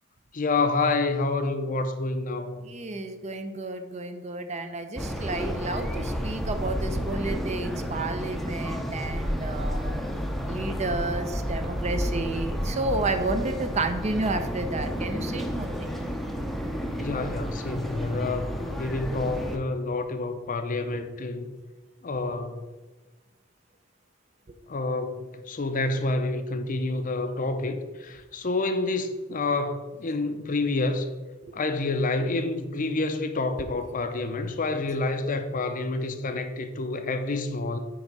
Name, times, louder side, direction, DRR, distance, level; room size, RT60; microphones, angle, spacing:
voice 1, 0.3-2.7 17.0-21.5 22.0-22.6 24.7-31.1 31.5-37.8, left 3 dB, 40° left, 0.6 m, -28 dB
voice 2, 2.6-10.0 10.5-15.9 20.9-21.0 24.5-24.6 31.5-31.6, right 2 dB, 35° right, 0.6 m, -31 dB
sound 1, 5.0-19.6, equal, ahead, 0.7 m, -31 dB
9.6 x 3.5 x 5.3 m
head